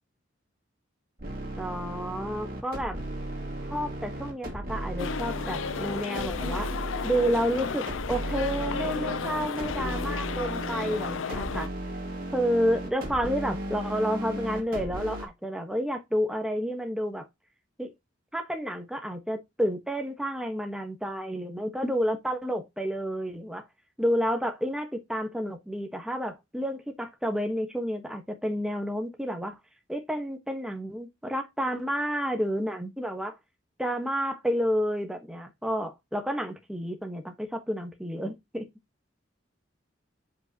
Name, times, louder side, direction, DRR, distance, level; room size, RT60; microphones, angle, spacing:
sound 1, 1.2-15.3, right 1 dB, 50° right, 2.3 m, -35 dB
voice 1, 1.6-3.0 3.7-6.7 7.0-11.7 12.3-17.2 17.8-17.9 18.3-23.6 24.0-29.6 29.9-33.3 33.8-38.7, equal, 5° right, 1.2 m, -30 dB
sound 2, 5.0-11.7, left 6 dB, 85° left, 0.5 m, -34 dB
7.5 x 5.3 x 2.8 m
head